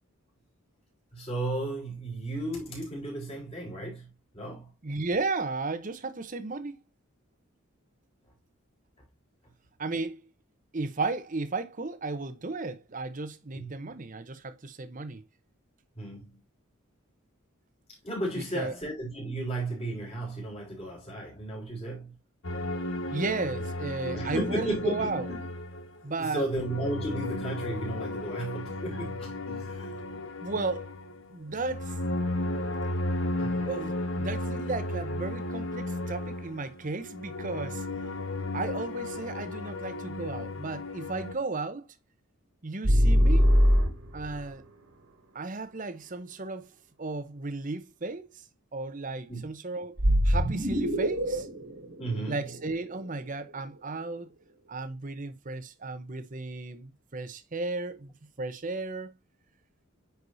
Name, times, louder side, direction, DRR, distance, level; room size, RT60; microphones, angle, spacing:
voice 1, 1.1-4.1 4.3-4.7 13.5-13.7 16.0-16.4 18.0-22.2 24.1-25.4 26.2-30.0 33.4-33.7 49.3-49.5 52.0-52.5, right 2 dB, 30° left, 4.2 m, -34 dB
voice 2, 4.8-6.8 9.8-10.2 10.7-15.2 18.3-18.8 23.1-25.3 26.0-26.4 30.4-31.0 31.3-32.0 33.6-37.9 38.5-41.9 42.6-43.6 44.1-44.6 45.3-46.7 47.0-48.5 48.7-51.5 52.3-54.3 54.7-59.1, right 3 dB, 40° right, 0.8 m, -34 dB
sound 1, 22.4-26.0 26.3-41.3, left 2 dB, 65° left, 1.2 m, -34 dB
sound 2, 42.8-44.4 50.0-53.1, equal, 80° right, 1.8 m, -23 dB
9.5 x 4.7 x 2.6 m
head